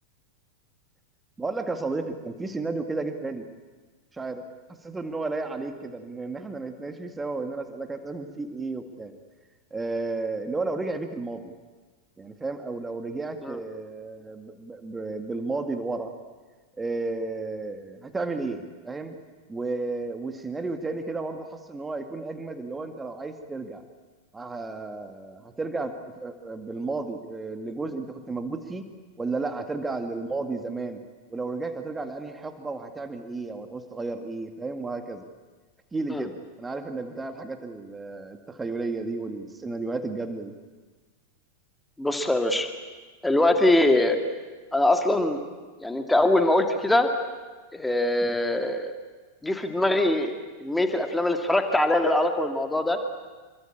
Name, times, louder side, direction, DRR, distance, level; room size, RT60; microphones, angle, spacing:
voice 1, 1.4-3.4 4.1-4.5 4.8-9.1 9.7-11.5 12.2-16.1 16.8-19.2 19.5-23.8 24.3-28.8 29.2-31.0 31.3-35.3 35.9-36.3 36.6-40.5 48.2-48.4, right 3 dB, 10° right, 7 dB, 2.1 m, -33 dB
voice 2, 42.0-42.7 43.2-44.2 44.7-45.4 45.8-47.1 47.7-48.9 49.4-50.3 50.6-53.0, left 1 dB, 5° left, 6 dB, 2.2 m, -22 dB
27.5 x 23.5 x 8.7 m, 1.3 s
figure-of-eight pair, 90°, 0 cm